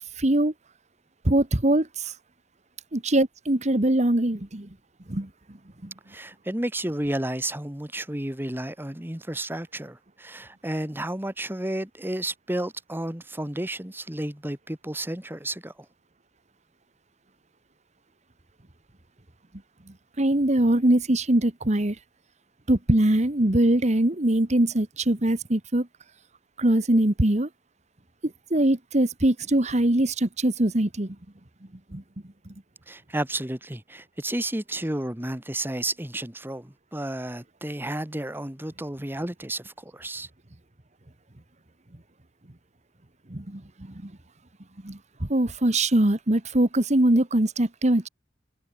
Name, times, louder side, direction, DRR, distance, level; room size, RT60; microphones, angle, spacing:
voice 1, 0.2-0.5 1.2-2.1 2.9-4.7 5.1-5.3 5.8-5.9 20.2-21.9 22.7-25.9 26.6-27.5 28.5-31.1 31.9-32.0 43.3-43.6 44.0-44.1 44.8-48.1, right 1 dB, 40° right, 1.6 m, -22 dB
voice 2, 6.1-15.7 32.9-40.3, right 1 dB, 10° right, 1.5 m, -32 dB
head